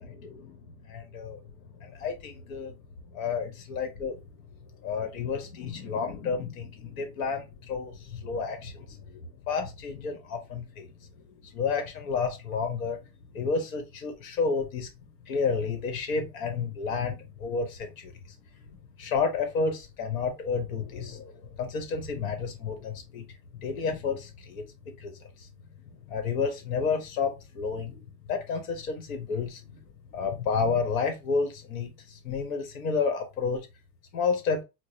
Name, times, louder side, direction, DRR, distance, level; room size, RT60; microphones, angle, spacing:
voice 1, 0.0-2.8 3.1-4.2 4.6-13.0 13.3-14.9 15.2-24.7 25.0-25.5 25.9-28.0 28.3-29.8 30.1-33.6 34.1-34.6, left 5 dB, 60° left, 1.3 m, -31 dB
4.5 x 2.2 x 2.7 m
hypercardioid pair, 105°, 47 cm